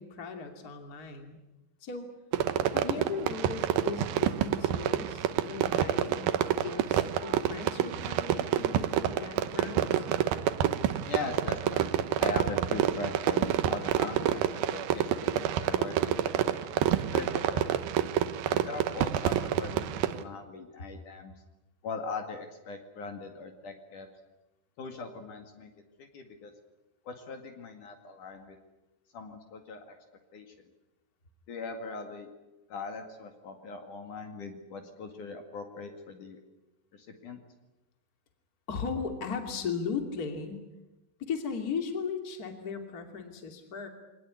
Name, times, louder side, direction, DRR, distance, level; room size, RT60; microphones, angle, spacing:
voice 1, 0.0-1.4 1.8-2.1 2.7-10.1 38.7-40.6 41.2-43.9, left 5 dB, 25° left, 5 dB, 2.7 m, -37 dB
Fireworks, 2.3-20.2, right 11 dB, 75° right, 2.8 m, -28 dB
voice 2, 11.1-16.6 17.1-17.7 18.5-21.3 21.8-24.1 24.8-25.7 26.0-26.5 27.0-28.6 29.1-30.0 30.3-30.5 31.5-32.3 32.7-36.4 36.9-37.4, left 4 dB, 60° left, 5 dB, 3.4 m, -40 dB
24.5 x 19.0 x 9.9 m, 1.0 s
omnidirectional pair, 4.4 m